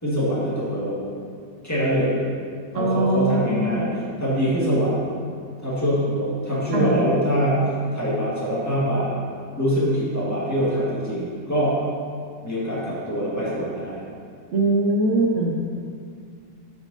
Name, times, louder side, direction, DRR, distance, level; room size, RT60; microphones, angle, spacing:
voice 1, 0.0-1.0 1.6-2.1 2.7-3.9 4.2-5.0 5.6-7.6 7.9-9.1 9.6-11.8 12.4-14.0, equal, 10° left, -9 dB, 1.5 m, -23 dB
voice 2, 2.7-3.8 6.7-7.0 14.5-15.5, right 2 dB, 70° right, -1 dB, 0.7 m, -22 dB
7.5 x 4.8 x 4.0 m, 2.2 s
omnidirectional pair, 2.0 m